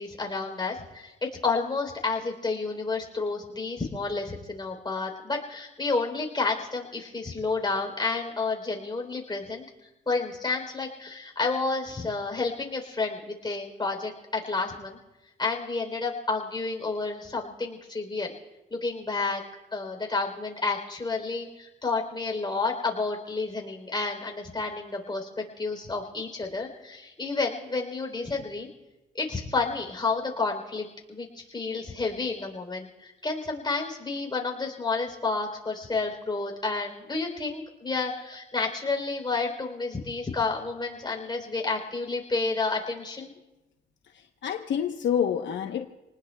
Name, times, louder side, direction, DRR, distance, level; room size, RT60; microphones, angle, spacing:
voice 1, 0.0-15.0 15.4-18.3 18.7-19.4 19.7-28.7 29.2-43.3, left 3 dB, 20° left, 3.5 m, -30 dB
voice 2, 44.1-45.9, left 8 dB, 65° left, 1.0 m, -28 dB
28.5 x 19.5 x 2.3 m
cardioid pair, 90°, 20 cm